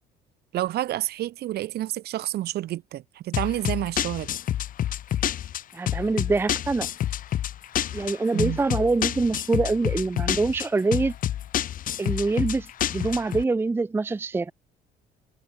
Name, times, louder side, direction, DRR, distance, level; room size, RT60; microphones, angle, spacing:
voice 1, 0.5-4.3 8.3-8.6, right 14 dB, 70° right, 5.5 m, -29 dB
sound 1, 3.3-13.4, left 11 dB, 55° left, 1.0 m, -28 dB
voice 2, 5.7-6.9 7.9-11.1 12.0-14.5, right 3 dB, 15° right, 0.5 m, -25 dB
cardioid pair, 110°, 17 cm